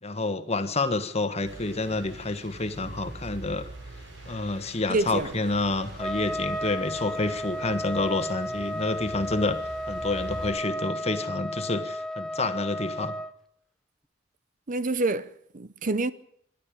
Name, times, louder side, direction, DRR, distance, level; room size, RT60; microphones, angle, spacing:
voice 1, 0.0-3.7 4.3-9.6 9.9-13.1, left 2 dB, 35° left, 1.5 m, -28 dB
sound 1, 1.4-10.5, right 1 dB, 85° right, 7.6 m, -44 dB
voice 2, 4.9-5.3 14.7-16.1, right 2 dB, 45° right, 0.7 m, -27 dB
Trumpet, 6.0-13.3, equal, 5° left, 0.7 m, -33 dB
26.0 x 12.0 x 8.6 m
head